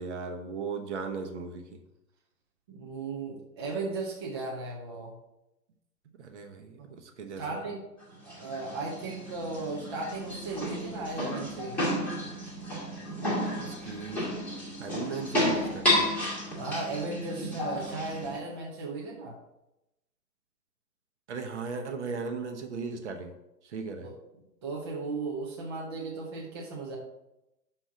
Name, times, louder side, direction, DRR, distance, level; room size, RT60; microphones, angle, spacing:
voice 1, 0.0-1.8 6.2-7.6 13.6-14.3 14.8-16.0 21.3-23.3 23.6-24.1, right 4 dB, 45° right, 5 dB, 1.0 m, -37 dB
voice 2, 2.7-5.1 6.8-6.9 7.4-7.8 8.2-11.8 16.5-19.3 24.0-24.1 24.6-27.0, right 3 dB, 15° right, -3 dB, 0.6 m, -36 dB
sound 1, 8.0-18.4, left 1 dB, 5° left, 1.2 m, -32 dB
5.9 x 4.4 x 6.2 m, 0.90 s
figure-of-eight pair, 130°, 49 cm